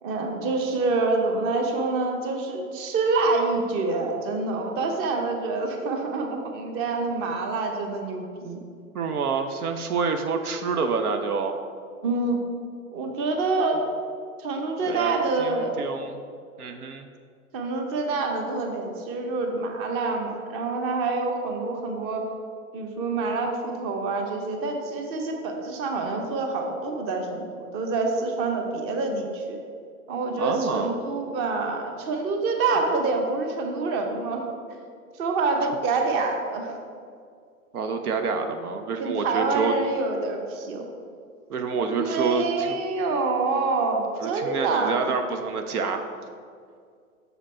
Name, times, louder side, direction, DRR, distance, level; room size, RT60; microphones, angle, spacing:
voice 1, 0.0-8.6 12.0-12.4 12.9-13.8 14.4-15.8 17.5-22.2 22.7-29.6 30.1-34.8 35.2-36.7 39.0-40.8 41.9-45.0, right 3 dB, 30° right, 3 dB, 0.9 m, -26 dB
voice 2, 8.9-11.5 14.9-15.1 15.4-16.2 16.6-17.1 30.4-30.9 37.7-39.7 41.5-42.7 44.2-46.0, right 5 dB, 80° right, 6 dB, 0.7 m, -27 dB
6.5 x 5.0 x 4.3 m, 2.2 s
hypercardioid pair, 110°, 44 cm